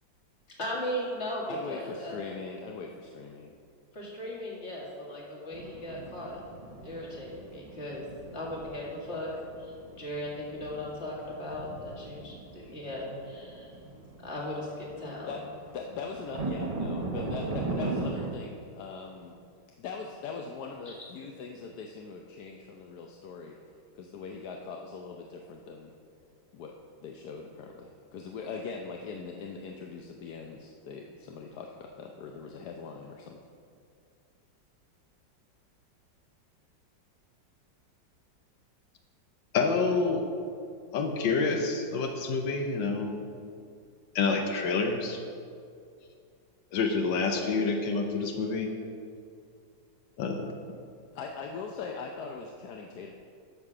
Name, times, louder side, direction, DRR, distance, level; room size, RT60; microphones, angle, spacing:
voice 1, 0.6-2.2 3.9-6.4 6.8-8.1 8.3-9.3 9.6-13.7 14.2-15.3 20.9-21.0, left 1 dB, 35° left, -4 dB, 2.3 m, -37 dB
voice 2, 1.5-3.5 15.3-15.4 15.7-19.4 19.8-23.6 23.9-25.9 26.5-26.7 27.0-33.4 51.1-53.1, left 5 dB, 65° left, 2 dB, 1.1 m, -41 dB
sound 1, 5.5-18.3, right 3 dB, 60° right, 0.4 m, -38 dB
voice 3, 39.5-40.2 40.9-43.2 44.1-45.2 46.7-48.7 50.2-50.4, left 4 dB, 85° left, 3 dB, 1.6 m, -28 dB
12.0 x 7.1 x 4.9 m, 2.4 s
omnidirectional pair, 2.0 m